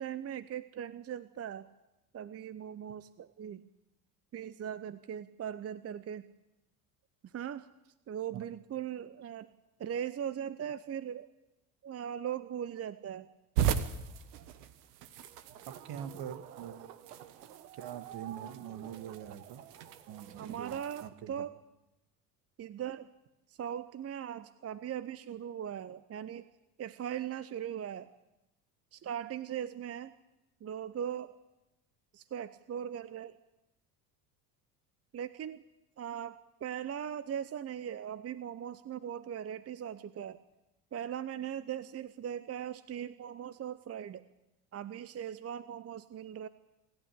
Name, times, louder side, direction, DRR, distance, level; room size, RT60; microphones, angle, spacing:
voice 1, 0.0-1.7 2.1-3.6 4.3-6.3 7.2-7.7 8.1-9.5 9.8-11.3 11.8-13.3 20.4-21.6 22.6-23.1 23.5-26.5 26.8-28.1 28.9-30.1 30.6-31.3 32.1-33.4 35.1-35.6 36.0-40.4 40.9-44.2 44.7-46.5, right 9 dB, 30° right, 15 dB, 0.9 m, -39 dB
sound 1, 13.6-21.1, right 9 dB, 75° right, 1.5 m, -38 dB
voice 2, 15.7-16.8 17.8-19.6 20.1-21.4, right 9 dB, 55° right, 12 dB, 1.6 m, -44 dB
27.0 x 12.0 x 10.0 m, 0.92 s
hypercardioid pair, 65°, 47 cm